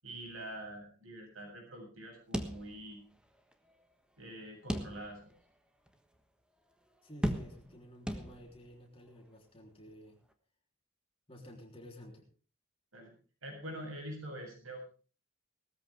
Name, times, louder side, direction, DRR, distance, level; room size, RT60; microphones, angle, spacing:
voice 1, 0.0-3.0 4.2-5.3 12.9-13.1 13.4-14.9, right 1 dB, 85° right, 1 dB, 7.3 m, -45 dB
sound 1, 2.3-3.2 3.5-3.6 4.7-5.3 5.9-6.0 7.2-7.8 8.1-8.7, equal, 5° right, 1.4 m, -36 dB
voice 2, 7.0-10.2 11.3-12.3, equal, 30° left, 1 dB, 3.6 m, -52 dB
19.5 x 13.5 x 3.6 m, 0.38 s
head